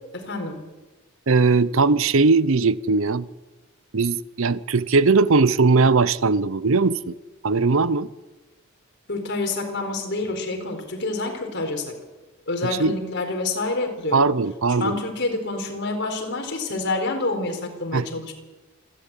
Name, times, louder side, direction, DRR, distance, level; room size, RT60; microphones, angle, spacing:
voice 1, 0.1-0.6 9.1-11.9 12.5-14.3 14.8-18.3, left 2 dB, 55° left, 4.6 m, -27 dB
voice 2, 1.3-3.3 3.9-7.2 7.4-8.1 12.8-12.9 14.1-15.0 17.9-18.1, right 4 dB, 65° right, 0.7 m, -19 dB
27.0 x 12.0 x 9.1 m
head